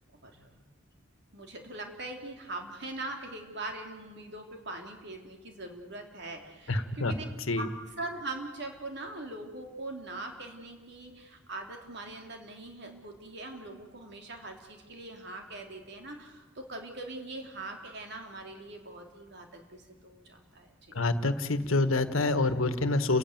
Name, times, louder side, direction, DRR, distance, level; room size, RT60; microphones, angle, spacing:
voice 1, 0.2-0.6 1.3-7.2 7.6-7.7 8.0-20.9, right 2 dB, 55° right, 3 dB, 3.2 m, -42 dB
voice 2, 6.7-7.1 7.5-7.7 20.9-23.2, left 2 dB, 80° left, 10 dB, 1.5 m, -27 dB
29.5 x 16.5 x 9.2 m, 1.3 s
head